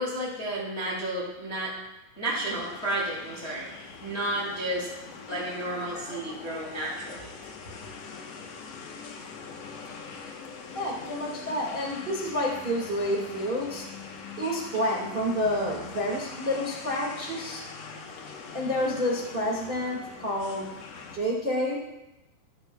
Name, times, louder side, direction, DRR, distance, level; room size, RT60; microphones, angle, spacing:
voice 1, 0.0-1.7 2.1-4.9 5.3-7.4, right 1 dB, 20° left, -6 dB, 2.2 m, -32 dB
sound 1, 2.4-21.2, left 5 dB, 75° left, 1.5 m, -43 dB
voice 2, 10.7-13.8 14.4-17.6 18.5-20.7 21.1-21.8, equal, 55° right, -3 dB, 0.6 m, -29 dB
14.0 x 13.0 x 2.3 m, 0.98 s
omnidirectional pair, 4.5 m